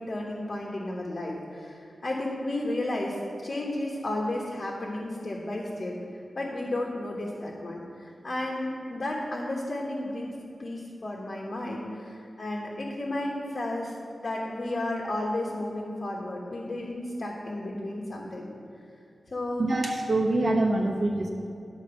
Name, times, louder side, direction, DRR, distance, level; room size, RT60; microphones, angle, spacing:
voice 1, 0.0-3.2 3.4-5.9 6.3-10.3 10.6-13.9 14.2-18.5 19.3-19.7, left 1 dB, 45° left, -3 dB, 1.3 m, -33 dB
voice 2, 19.6-21.3, right 2 dB, 50° right, 0 dB, 1.0 m, -25 dB
10.5 x 4.4 x 7.0 m, 2.5 s
wide cardioid pair, 115°, 0 cm